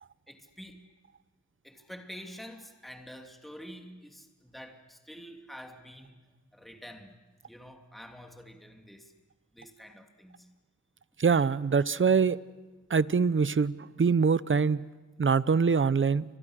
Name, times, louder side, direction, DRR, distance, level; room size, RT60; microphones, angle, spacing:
voice 1, 0.3-0.8 1.6-6.1 6.5-7.1 7.5-9.1 9.5-10.5, equal, ahead, 4 dB, 2.9 m, -47 dB
voice 2, 11.2-12.4 12.9-13.7 14.0-14.8 15.2-16.2, right 5 dB, 45° right, 17 dB, 0.9 m, -24 dB
29.5 x 25.0 x 6.5 m, 1.3 s
cardioid pair, 55°, 29 cm